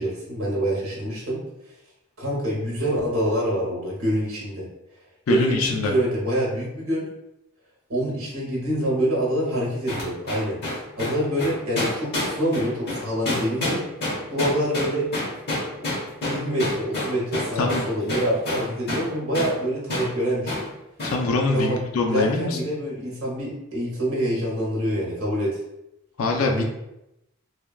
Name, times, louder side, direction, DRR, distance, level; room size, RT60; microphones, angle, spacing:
voice 1, 0.0-1.4 2.2-4.7 5.3-7.1 7.9-10.6 11.0-13.8 14.3-15.1 15.8-15.9 16.2-20.6 21.5-21.8 22.1-25.6 26.4-26.6, right 1 dB, 65° right, -5 dB, 0.9 m, -26 dB
voice 2, 5.3-5.9 17.6-17.8 21.0-22.6 26.2-26.6, left 3 dB, 70° left, 1 dB, 0.4 m, -23 dB
sound 1, 9.9-19.1 19.3-19.6 19.9-20.1 20.5-20.7 21.0-21.2, left 1 dB, 50° left, 1.0 m, -28 dB
3.2 x 2.2 x 2.3 m, 0.89 s
head